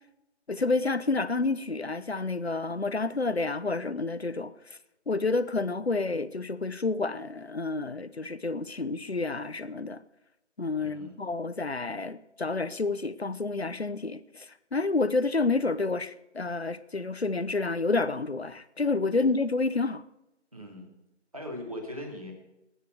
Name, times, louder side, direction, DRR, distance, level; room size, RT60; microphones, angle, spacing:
voice 1, 0.5-4.8 5.1-10.0 10.6-20.0, left 3 dB, 60° left, 0.9 m, -29 dB
voice 2, 10.8-11.2 19.1-19.3 20.5-20.9 21.3-22.3, left 1 dB, 30° right, 2.5 m, -40 dB
18.5 x 9.4 x 4.7 m
figure-of-eight pair, 180°, 36 cm